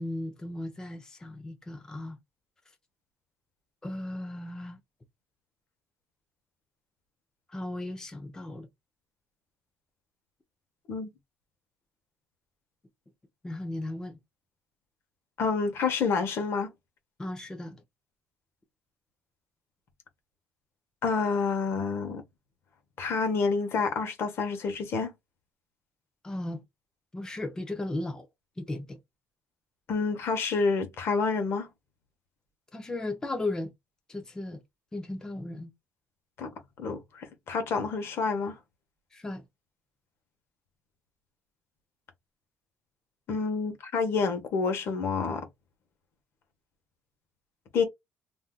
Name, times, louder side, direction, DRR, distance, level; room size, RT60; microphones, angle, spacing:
voice 1, 0.0-2.2 3.8-4.8 7.5-8.7 13.4-14.2 17.2-17.8 26.2-26.6 27.1-28.3 28.6-29.0 32.7-33.7 34.1-34.6 34.9-35.7 39.1-39.4, left 2 dB, 15° left, 0.5 m, -36 dB
voice 2, 15.4-16.7 21.0-22.2 23.0-25.1 29.9-31.7 36.4-36.5 36.8-38.6 43.3-45.5 47.7-47.8, left 4 dB, 60° left, 0.9 m, -28 dB
3.6 x 2.6 x 2.3 m
cardioid pair, 140°, 5 cm